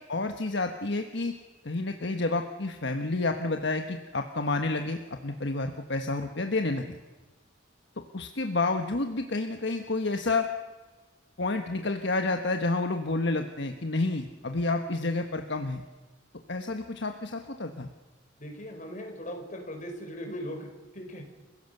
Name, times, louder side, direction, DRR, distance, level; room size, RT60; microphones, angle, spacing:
voice 1, 0.1-1.3 1.6-7.0 8.1-10.5 11.4-15.8 16.5-17.9, left 2 dB, 65° left, 6 dB, 1.3 m, -29 dB
voice 2, 18.4-21.2, equal, 40° left, 3 dB, 4.7 m, -39 dB
30.0 x 16.5 x 6.8 m, 1.3 s
head